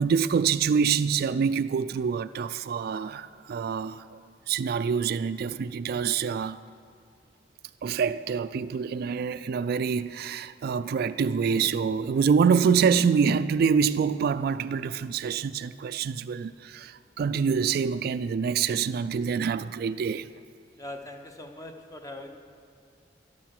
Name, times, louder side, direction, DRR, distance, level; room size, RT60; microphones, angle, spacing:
voice 1, 0.0-4.2 4.5-6.6 7.8-20.3, right 6 dB, 55° right, 0.3 m, -26 dB
voice 2, 20.8-22.4, left 1 dB, 20° left, 0.9 m, -41 dB
12.0 x 12.0 x 6.0 m
head